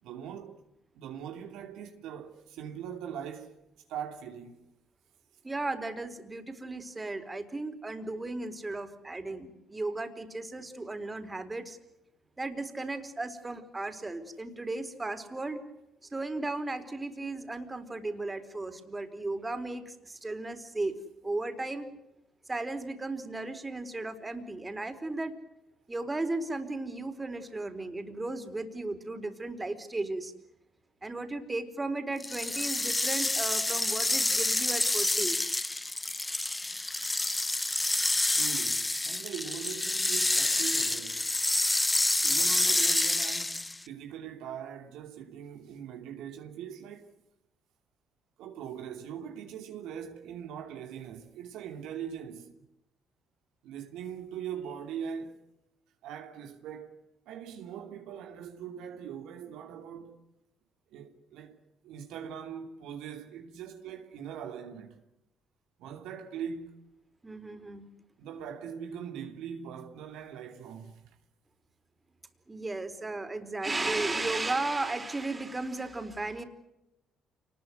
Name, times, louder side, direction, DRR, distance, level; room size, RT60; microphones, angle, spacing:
voice 1, 0.0-0.6 0.9-3.6 3.9-4.6 38.3-41.3 42.2-47.2 48.4-52.5 53.6-55.4 56.0-60.2 60.9-65.0 65.8-66.7 68.2-71.2, right 8 dB, 75° right, 2.8 m, -41 dB
voice 2, 5.4-11.8 12.4-15.6 16.1-20.9 21.2-21.9 22.5-25.3 25.9-30.3 31.0-35.4 67.2-67.9 72.5-76.4, right 2 dB, 20° right, 4.5 m, -35 dB
sound 1, 32.2-43.8, left 2 dB, 15° left, 1.4 m, -28 dB
29.0 x 21.0 x 8.0 m
hypercardioid pair, 50°, 0 cm